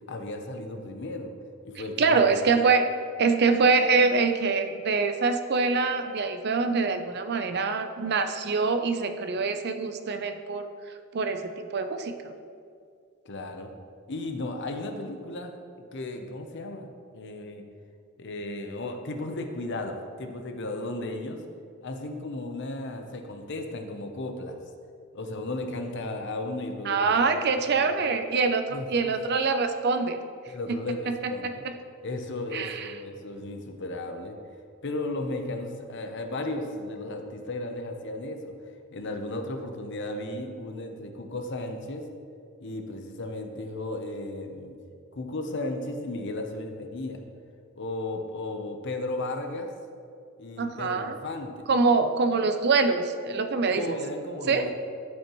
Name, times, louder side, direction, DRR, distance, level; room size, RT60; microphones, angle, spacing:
voice 1, 0.1-1.3 1.6-2.4 13.2-13.7 14.1-17.6 18.2-21.4 21.8-24.6 25.1-28.2 28.7-29.1 30.5-31.6 32.0-34.4 34.8-38.5 38.9-42.0 42.6-44.7 45.1-47.2 47.8-49.7 50.4-51.7 53.7-54.7, left 2 dB, 60° left, 5 dB, 0.8 m, -35 dB
voice 2, 2.0-2.9 3.2-10.7 11.1-12.3 26.9-30.2 30.7-30.8 31.1-31.5 32.5-32.9 50.6-51.2 51.7-54.0 54.5-54.7, right 4 dB, 55° right, 8 dB, 0.5 m, -24 dB
12.5 x 5.5 x 3.1 m, 2.3 s
head